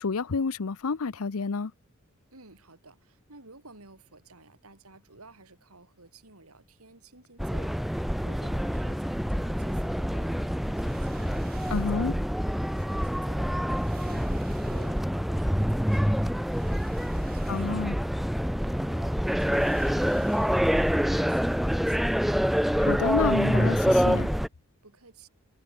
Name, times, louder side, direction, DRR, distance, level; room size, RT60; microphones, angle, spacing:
voice 1, 0.0-1.7 11.7-12.1 17.5-18.0 22.8-24.3, left 4 dB, 75° left, 0.7 m, -29 dB
voice 2, 2.3-12.2 12.5-22.1 24.8-25.3, right 3 dB, 75° right, 4.7 m, -54 dB
sound 1, 7.4-24.5, equal, ahead, 0.3 m, -26 dB
sound 2, 10.6-12.1 13.2-13.3 13.7-15.3 16.3-18.1 18.4-18.5 19.3-21.0 21.2-21.4, right 5 dB, 40° right, 2.0 m, -53 dB
head